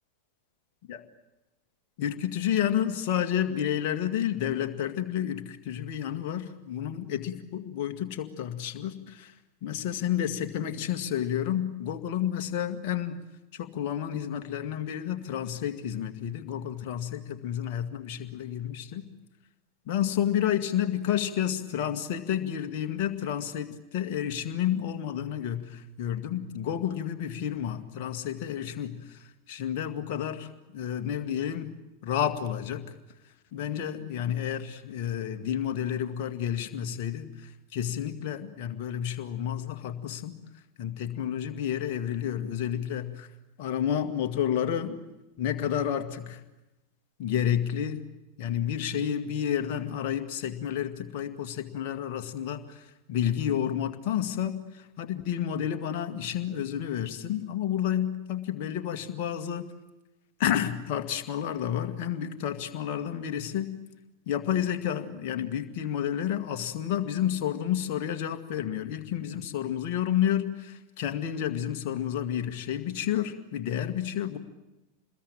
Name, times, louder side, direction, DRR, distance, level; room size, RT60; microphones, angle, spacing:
voice 1, 2.0-9.3 9.6-13.2 13.5-19.0 19.9-31.7 32.0-32.8 33.5-40.4 40.8-43.3 43.6-45.0 45.4-46.4 47.2-48.0 48.4-59.7 60.4-63.8 64.3-74.4, left 10 dB, 45° left, 7 dB, 2.1 m, -30 dB
27.5 x 21.5 x 9.0 m, 1.0 s
figure-of-eight pair, 90°, 0 cm